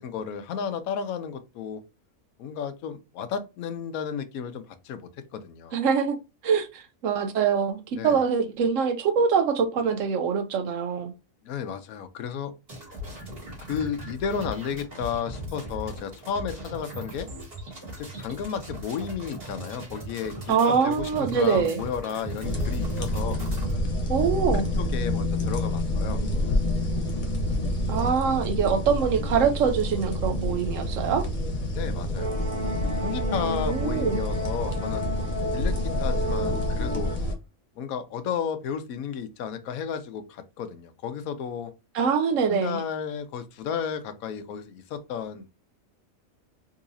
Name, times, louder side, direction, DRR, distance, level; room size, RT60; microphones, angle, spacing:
voice 1, 0.0-1.8 2.4-5.8 7.9-8.2 11.4-12.5 13.7-17.3 18.0-23.4 24.5-26.2 31.7-32.3 33.0-35.1 35.5-35.7 36.0-37.1 37.8-41.7 42.5-45.5, left 7 dB, 80° left, 1.1 m, -33 dB
voice 2, 5.7-6.2 6.4-11.1 20.5-21.8 24.1-24.7 27.9-31.3 33.6-34.2 41.9-42.8, right 6 dB, 70° right, 0.9 m, -24 dB
sound 1, 12.7-23.8, equal, 40° right, 1.9 m, -39 dB
sound 2, 22.4-37.3, left 1 dB, 35° left, 1.0 m, -28 dB
sound 3, 32.2-37.2, equal, 25° right, 1.4 m, -33 dB
3.9 x 2.8 x 2.6 m
omnidirectional pair, 1.5 m